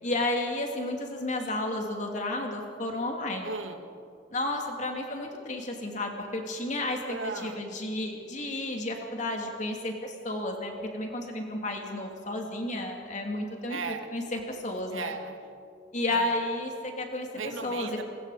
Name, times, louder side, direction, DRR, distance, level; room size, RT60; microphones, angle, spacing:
voice 1, 0.0-3.5 4.3-7.2 7.4-13.8 14.1-15.1 15.9-17.3 17.6-18.0, left 1 dB, 40° left, 2 dB, 2.8 m, -32 dB
voice 2, 3.4-3.8 7.1-7.7 13.7-14.1 14.9-15.5 16.1-16.5 17.3-18.0, right 4 dB, 90° right, 6 dB, 1.8 m, -37 dB
30.0 x 22.0 x 5.0 m, 2.5 s
head